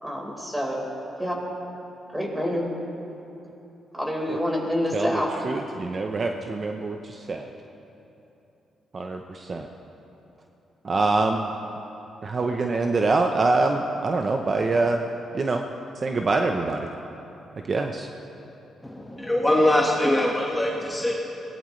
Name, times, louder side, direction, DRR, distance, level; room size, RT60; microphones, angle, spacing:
voice 1, 0.0-0.8 1.2-1.4 2.1-2.7 3.9-5.3, equal, 10° right, -2 dB, 4.6 m, -27 dB
voice 2, 4.9-7.5 8.9-9.7 10.8-11.5 12.2-15.0 15.3-15.6 16.0-16.9 17.7-18.1, right 3 dB, 40° right, 4 dB, 0.9 m, -25 dB
voice 3, 18.8-21.1, left 1 dB, 10° left, -3 dB, 1.7 m, -22 dB
23.0 x 18.5 x 3.3 m, 3.0 s
cardioid pair, 75°, 0 cm